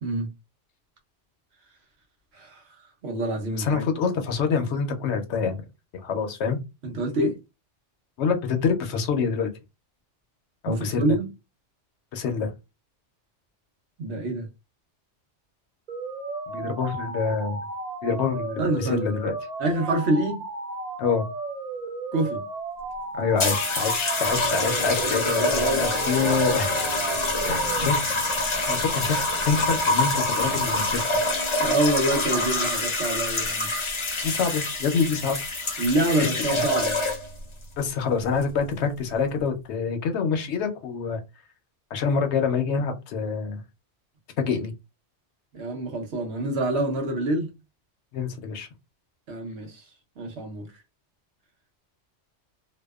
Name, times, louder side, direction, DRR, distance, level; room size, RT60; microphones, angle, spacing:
voice 1, 0.0-0.3 2.3-2.6 3.0-3.8 6.2-6.3 6.8-7.4 10.7-11.3 14.0-14.5 18.6-19.1 19.6-20.4 22.1-22.4 25.4-25.9 27.0-27.5 27.8-27.9 31.6-33.7 35.8-37.0 45.5-47.5 49.3-49.8 50.2-50.7, right 1 dB, 70° right, 1.0 m, -26 dB
voice 2, 3.5-5.6 6.0-6.6 8.2-9.5 10.6-11.2 12.1-12.5 16.5-17.6 18.0-19.3 21.0-21.3 23.1-26.8 27.4-28.0 28.7-31.1 34.2-35.4 36.2-36.6 37.8-41.2 41.9-43.6 44.4-44.7 48.1-48.7, left 5 dB, 70° left, 0.8 m, -26 dB
sound 1, 15.9-27.9, right 3 dB, 55° right, 0.5 m, -34 dB
sound 2, 23.4-37.4 38.3-38.6, left 2 dB, 35° left, 0.6 m, -26 dB
2.7 x 2.1 x 2.2 m
omnidirectional pair, 1.2 m